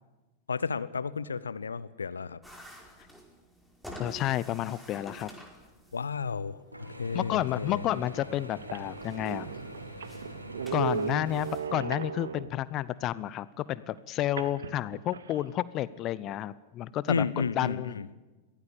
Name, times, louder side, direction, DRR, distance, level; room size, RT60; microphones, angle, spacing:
voice 1, 0.5-2.4 5.9-7.8 17.1-18.1, left 5 dB, 75° left, 17 dB, 0.8 m, -32 dB
sound 1, 2.4-11.7, equal, ahead, 4.9 m, -51 dB
voice 2, 4.0-5.3 7.1-9.5 10.7-17.9, left 13 dB, 35° left, 19 dB, 0.7 m, -31 dB
Mechanisms / Drill, 6.7-12.2, equal, 85° right, 3.2 m, -45 dB
sound 2, 7.7-7.8 8.3-8.4 8.6-12.7 14.4-15.5, right 6 dB, 70° right, 1.2 m, -36 dB
23.0 x 17.0 x 8.6 m, 1.2 s
figure-of-eight pair, 90°, 0 cm